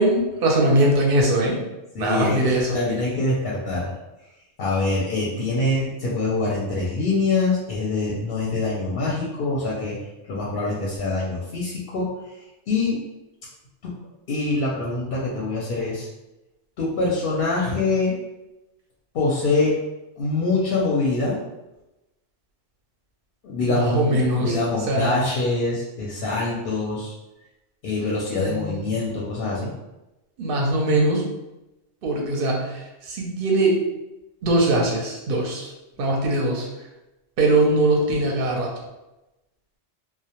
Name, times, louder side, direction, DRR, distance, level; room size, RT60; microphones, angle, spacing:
voice 1, 0.0-1.6 2.0-2.7 23.6-24.5 24.9-25.2 28.4-28.9 30.4-31.2 32.0-32.8 33.1-33.8 34.4-35.7 36.0-36.7 37.4-38.7, right 1 dB, 60° right, -1 dB, 0.7 m, -21 dB
voice 2, 1.9-3.9 4.6-10.0 10.3-12.1 12.7-13.0 13.8-13.9 14.3-16.1 16.8-18.1 19.1-19.7 20.2-21.4 23.4-27.1 27.8-29.7, left 3 dB, 60° left, -5 dB, 0.7 m, -24 dB
2.1 x 2.1 x 2.8 m, 0.98 s
omnidirectional pair, 1.2 m